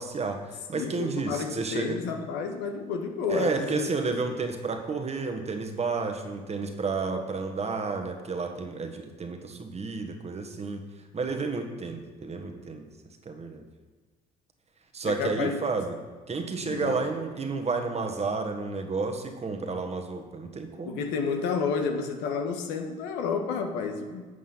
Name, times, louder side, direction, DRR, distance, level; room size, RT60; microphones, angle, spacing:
voice 1, 0.0-2.0 3.3-10.8 11.1-12.9 13.2-13.6 14.9-16.0 16.3-21.0, right 4 dB, 35° right, 5 dB, 1.5 m, -31 dB
voice 2, 0.7-4.1 15.0-15.6 16.6-16.9 20.9-24.3, left 5 dB, 75° left, 5 dB, 1.3 m, -30 dB
8.3 x 7.9 x 5.7 m, 1.4 s
hypercardioid pair, 65°, 19 cm